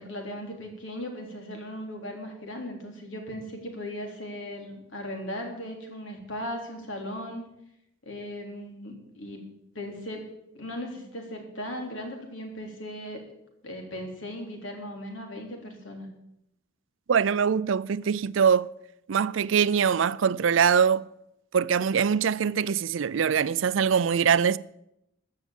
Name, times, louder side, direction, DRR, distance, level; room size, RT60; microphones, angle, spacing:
voice 1, 0.0-7.5 8.0-9.4 9.7-10.3 10.5-13.2 13.6-16.1, left 1 dB, 70° left, 3.4 m, -37 dB
voice 2, 17.1-18.7 19.1-21.0 21.5-24.6, right 7 dB, 70° right, 0.4 m, -23 dB
14.5 x 6.6 x 9.2 m
head